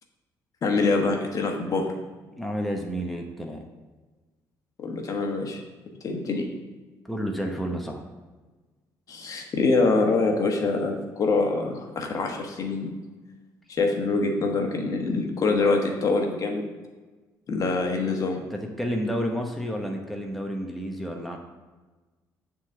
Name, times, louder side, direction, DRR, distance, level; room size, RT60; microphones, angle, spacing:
voice 1, 0.6-1.9 4.8-5.6 6.0-6.5 9.1-12.9 13.7-16.7 17.5-18.4, left 3 dB, 50° left, 2 dB, 1.3 m, -25 dB
voice 2, 2.4-3.7 7.0-8.0 18.5-21.4, equal, ahead, 1 dB, 0.9 m, -30 dB
7.2 x 3.9 x 6.6 m, 1.3 s
supercardioid pair, 80°, 8 cm